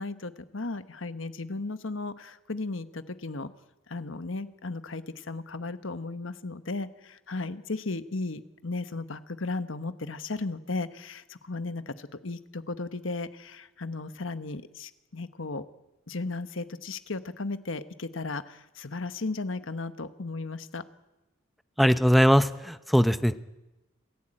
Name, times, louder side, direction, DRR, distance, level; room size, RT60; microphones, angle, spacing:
voice 1, 0.0-3.5 3.9-15.7 16.1-20.8, left 3 dB, 70° left, 11 dB, 1.3 m, -35 dB
voice 2, 21.8-23.4, equal, ahead, 11 dB, 0.9 m, -21 dB
27.0 x 15.5 x 8.9 m, 1.0 s
head